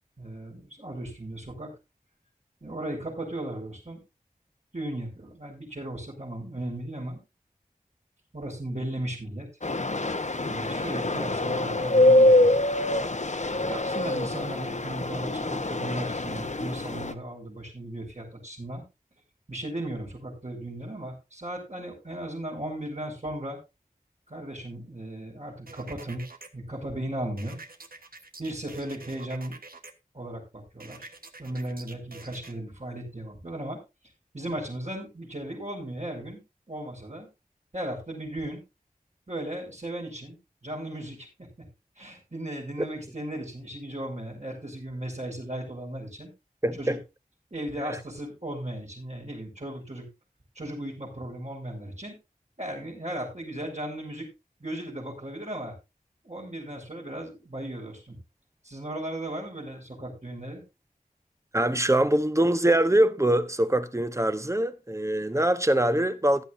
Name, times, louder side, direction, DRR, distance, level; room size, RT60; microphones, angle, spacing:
voice 1, 0.2-1.7 2.6-4.0 4.7-7.2 8.3-9.5 10.5-12.7 13.6-18.8 19.5-23.6 24.3-26.3 26.5-27.6 28.4-29.5 30.1-31.1 31.4-33.8 34.3-36.4 36.7-37.3 37.7-38.6 39.3-41.7 42.0-46.3 46.8-47.0 47.5-50.1 50.5-52.2 52.6-54.3 54.6-55.7 56.2-58.2 58.6-60.6, right 1 dB, 50° right, 5.6 m, -36 dB
sound 1, 9.6-17.1, left 1 dB, 50° left, 1.1 m, -24 dB
sound 2, 25.7-26.5 27.4-29.9 30.8-32.5, right 3 dB, 75° right, 1.4 m, -46 dB
voice 2, 46.6-47.0 47.8-48.0 61.5-66.4, right 1 dB, 20° right, 1.1 m, -23 dB
14.5 x 11.5 x 2.7 m
wide cardioid pair, 40°, 15 cm